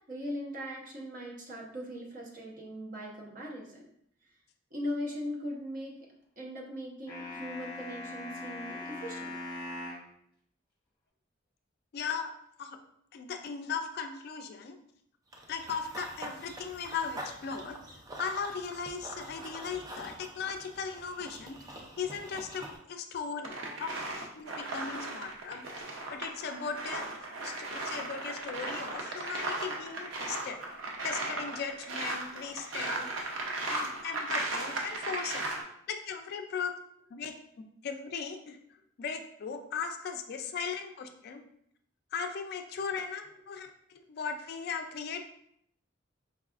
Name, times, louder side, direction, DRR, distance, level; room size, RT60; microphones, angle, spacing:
voice 1, 0.1-3.9 4.7-6.0 6.4-9.3 23.5-23.8 33.3-33.4 35.5-35.6 42.8-43.0, equal, 45° right, -1 dB, 0.8 m, -40 dB
sound 1, 7.1-10.1, left 2 dB, 25° left, 1.0 m, -41 dB
voice 2, 11.9-12.3 12.6-12.8 13.1-14.8 15.5-17.8 18.2-21.6 22.0-23.9 24.3-27.1 27.4-30.6 31.0-33.2 33.7-35.5 35.9-36.7 37.1-38.6 39.0-41.4 42.1-43.7 44.1-45.2, left 6 dB, 55° left, 6 dB, 0.3 m, -37 dB
Run / Bird vocalization bird call bird song, 15.3-22.8, right 1 dB, 20° right, 0.4 m, -45 dB
sound 2, 23.4-35.6, right 2 dB, 85° right, 0.6 m, -36 dB
4.6 x 2.3 x 2.4 m, 0.70 s
head